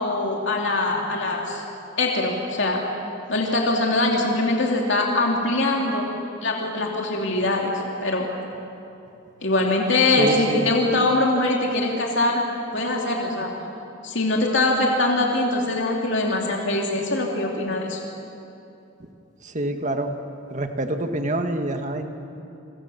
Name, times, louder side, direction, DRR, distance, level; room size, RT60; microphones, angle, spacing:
voice 1, 0.0-1.6 2.0-2.8 3.3-6.1 6.4-7.7 8.0-8.3 9.4-12.4 12.7-13.5 14.0-18.0, left 2 dB, 65° left, -1 dB, 2.8 m, -22 dB
voice 2, 10.2-10.7 19.0-19.1 19.4-20.1 20.5-22.0, right 1 dB, 40° right, 5 dB, 1.8 m, -26 dB
28.5 x 24.5 x 7.1 m, 2.8 s
head